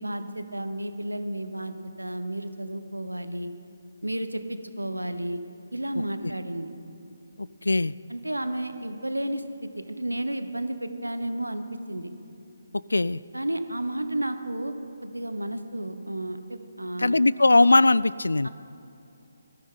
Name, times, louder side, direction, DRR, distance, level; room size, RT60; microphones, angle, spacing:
voice 1, 0.0-3.5 4.0-5.4 5.7-6.7 8.1-12.1 13.3-14.7 15.0-17.2 18.4-18.5, right 1 dB, 85° right, 9 dB, 1.1 m, -32 dB
voice 2, 7.4-7.9 12.9-13.2 17.0-18.5, left 2 dB, 75° left, 20 dB, 0.3 m, -20 dB
19.5 x 14.5 x 3.9 m, 2.8 s
figure-of-eight pair, 145°, 0 cm